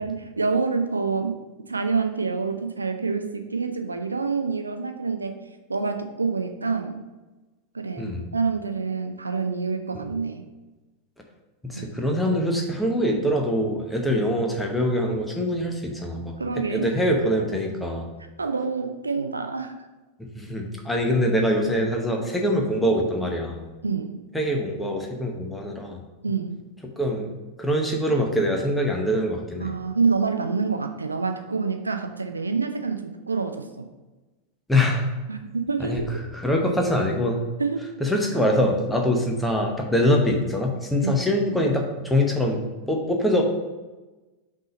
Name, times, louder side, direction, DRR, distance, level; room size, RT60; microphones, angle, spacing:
voice 1, 0.0-1.4 1.7-5.4 5.7-7.0 7.7-10.4 11.7-11.9 16.4-17.2 18.4-19.7 23.8-24.1 26.2-26.6 29.6-33.9 35.3-36.0 37.6-37.9 41.0-41.3, right 4 dB, 80° right, 6 dB, 0.5 m, -27 dB
voice 2, 11.6-16.4 16.7-18.1 20.3-23.6 24.3-26.0 27.0-27.3 27.6-29.7 34.7-35.1 35.8-37.4 38.0-42.6 42.9-43.4, left 1 dB, 5° left, 1 dB, 0.9 m, -24 dB
5.7 x 3.4 x 5.1 m, 1.2 s
figure-of-eight pair, 90°, 0 cm